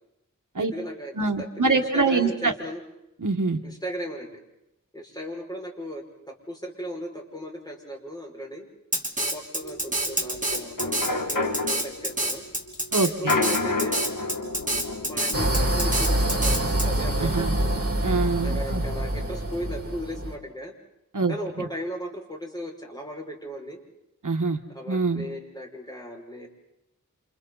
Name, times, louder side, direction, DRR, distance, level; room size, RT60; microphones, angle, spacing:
voice 1, 0.6-2.8 3.6-4.4 4.9-8.7 9.3-11.0 11.3-12.4 13.0-14.1 15.0-17.8 18.4-20.7 21.3-23.8 24.7-26.5, equal, 10° left, 0 dB, 5.6 m, -36 dB
voice 2, 1.2-2.5 3.2-3.6 12.9-13.3 17.2-17.5 18.0-18.8 21.1-21.3 24.2-24.6 24.9-25.3, right 3 dB, 75° right, 5 dB, 1.5 m, -24 dB
Drum kit, 8.9-16.9, right 1 dB, 25° right, 3.0 m, -27 dB
sound 1, 9.6-18.2 18.6-18.7 18.9-19.5, left 3 dB, 90° left, 1.8 m, -31 dB
sound 2, 15.3-20.3, right 1 dB, 45° right, 4.3 m, -25 dB
29.0 x 27.5 x 4.1 m, 0.86 s
wide cardioid pair, 55°, 31 cm